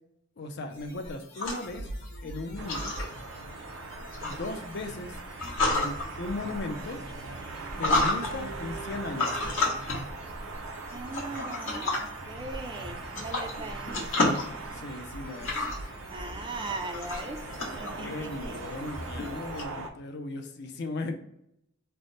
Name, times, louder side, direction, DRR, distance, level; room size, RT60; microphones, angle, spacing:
voice 1, 0.4-1.9 2.2-2.9 4.2-5.2 5.7-7.0 7.8-9.7 14.7-15.6 18.0-21.2, left 2 dB, 55° left, 5 dB, 0.5 m, -37 dB
sound 1, 0.7-19.6, left 2 dB, 75° left, 1.2 m, -33 dB
sound 2, 2.6-19.9, right 3 dB, 80° right, 0.6 m, -41 dB
voice 2, 10.9-14.1 16.1-17.4 17.8-18.6, right 3 dB, 25° right, 5 dB, 0.3 m, -39 dB
3.3 x 2.1 x 3.9 m, 0.77 s
head